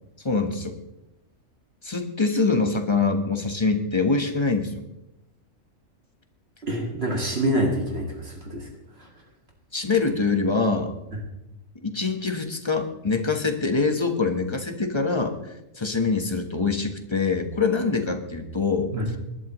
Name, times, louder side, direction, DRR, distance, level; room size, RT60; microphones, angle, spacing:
voice 1, 0.2-0.8 1.8-4.8 9.7-10.9 11.8-15.3 15.8-18.9, left 4 dB, 20° left, 5 dB, 1.2 m, -24 dB
voice 2, 6.6-8.7 18.9-19.1, right 1 dB, 50° right, 0 dB, 2.4 m, -26 dB
20.0 x 11.5 x 3.1 m, 0.91 s
omnidirectional pair, 1.4 m